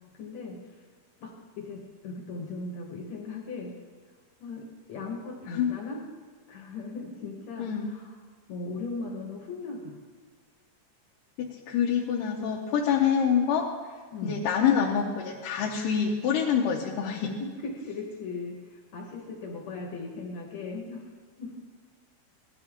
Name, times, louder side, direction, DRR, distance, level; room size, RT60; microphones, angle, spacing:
voice 1, 0.2-0.6 1.2-3.8 4.4-6.0 6.5-8.1 8.5-9.9 14.1-14.4 17.4-21.1 21.4-21.5, left 3 dB, 65° left, 0 dB, 2.3 m, -38 dB
voice 2, 7.6-7.9 11.4-13.7 14.2-17.4, left 7 dB, 80° left, -3 dB, 2.5 m, -26 dB
17.0 x 11.5 x 3.6 m, 1.5 s
omnidirectional pair, 3.8 m